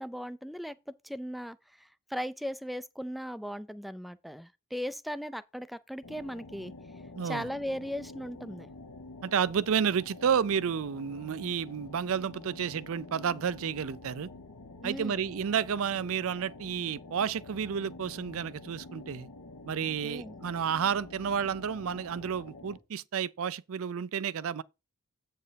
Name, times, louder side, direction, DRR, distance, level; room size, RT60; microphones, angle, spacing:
voice 1, 0.0-6.7 7.2-8.7 14.8-15.3 20.0-20.3, equal, ahead, 0.3 m, -38 dB
sound 1, 6.0-22.8, left 2 dB, 90° left, 1.2 m, -48 dB
voice 2, 7.2-7.5 9.2-14.3 14.8-19.3 19.7-24.6, right 7 dB, 65° right, 0.4 m, -31 dB
8.4 x 4.3 x 5.1 m
head